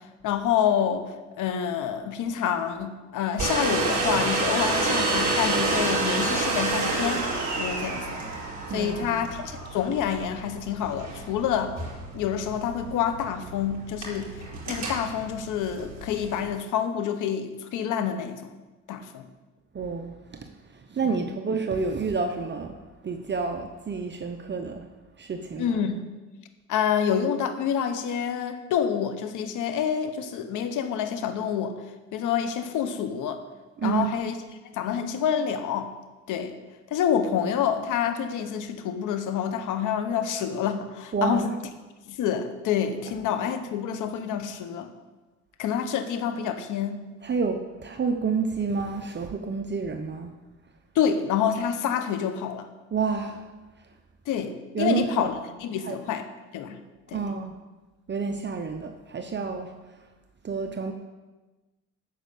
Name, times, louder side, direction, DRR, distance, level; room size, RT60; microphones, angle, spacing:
voice 1, 0.2-7.2 7.6-8.2 8.7-11.8 12.1-14.3 14.7-18.5 18.9-19.3 21.0-21.4 25.6-26.1 26.7-31.7 32.1-33.4 33.8-34.3 34.7-35.9 36.3-36.5 36.9-41.5 42.1-44.9 45.6-47.0 50.9-52.7 54.3-56.3 56.5-56.8 57.1-57.2, left 8 dB, 85° left, 9 dB, 1.1 m, -27 dB
Domestic sounds home sounds, 3.4-16.5, right 3 dB, 60° right, 4.5 m, -29 dB
voice 2, 8.7-9.2 19.7-22.7 23.0-24.8 25.2-25.8 33.8-34.2 41.1-41.5 47.2-50.3 52.9-53.5 54.7-55.3 55.8-56.0 57.1-57.5 58.1-59.7 60.4-60.9, right 5 dB, 35° right, 5 dB, 0.9 m, -29 dB
9.1 x 6.7 x 8.4 m, 1.2 s
cardioid pair, 90°, 30 cm